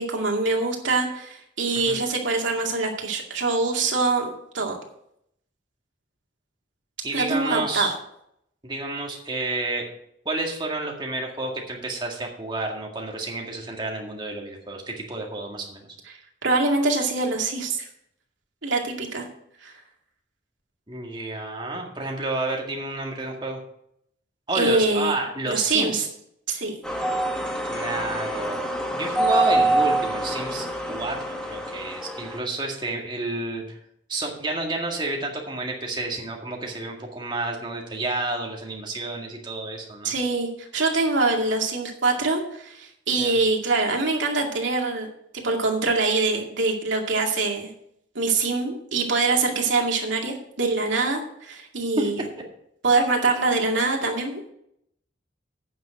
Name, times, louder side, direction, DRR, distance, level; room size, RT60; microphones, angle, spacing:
voice 1, 0.0-4.8 7.1-7.9 16.1-17.9 18.6-19.3 19.6-19.7 24.5-25.1 25.5-26.0 26.5-26.8 40.0-45.1 45.4-47.7 48.1-52.2 52.8-54.5, right 3 dB, 80° right, 1 dB, 2.3 m, -24 dB
voice 2, 7.0-7.9 8.6-9.9 10.3-15.9 20.9-23.6 24.5-26.0 27.6-33.8 34.1-40.2 43.2-43.3 52.0-52.1, right 2 dB, 25° right, 0 dB, 1.9 m, -30 dB
sound 1, 26.8-32.4, right 2 dB, 5° left, 1.1 m, -25 dB
9.2 x 6.2 x 7.8 m, 0.74 s
head